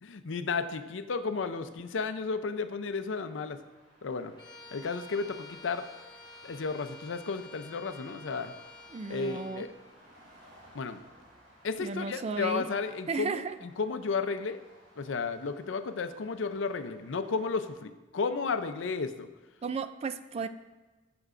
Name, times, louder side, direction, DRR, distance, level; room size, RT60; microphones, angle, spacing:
voice 1, 0.0-3.6 4.0-4.3 4.7-5.9 6.4-8.5 9.1-9.7 10.7-11.0 11.6-14.6 15.0-19.3, left 4 dB, 80° left, 10 dB, 0.5 m, -33 dB
sound 1, 1.7-17.7, equal, 80° right, 2.4 m, -59 dB
Bowed string instrument, 4.4-9.8, left 2 dB, 25° left, 1.1 m, -50 dB
voice 2, 8.9-9.7 11.8-12.7 13.1-13.6 19.6-20.5, right 5 dB, 35° right, 11 dB, 0.3 m, -34 dB
14.5 x 5.9 x 2.5 m, 1.2 s
head